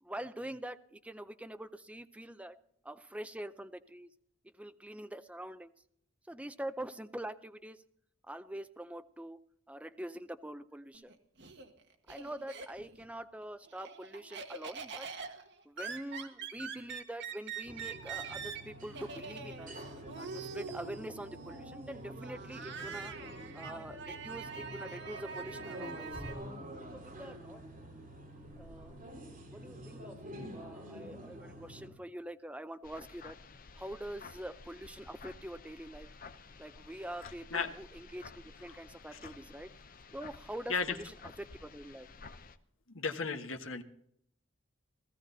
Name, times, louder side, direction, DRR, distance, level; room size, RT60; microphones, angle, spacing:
voice 1, 0.0-2.6 2.8-4.1 4.5-5.7 6.3-7.8 8.3-11.2 12.1-15.1 15.7-19.8 20.2-23.2 23.5-26.2 26.9-27.6 28.6-29.0 29.5-33.4 33.8-36.1 36.6-39.7 40.1-42.1, right 1 dB, 5° right, 10 dB, 0.6 m, -45 dB
Laughter, 10.9-13.1 13.4-26.3, right 5 dB, 60° right, 1.7 m, -44 dB
sound 1, 17.6-31.9, right 1 dB, 40° right, 3.9 m, -47 dB
sound 2, 32.8-42.6, left 4 dB, 45° left, 0.8 m, -52 dB
voice 2, 42.9-43.8, left 5 dB, 75° left, 5 dB, 1.3 m, -34 dB
17.0 x 14.5 x 4.0 m, 0.69 s
head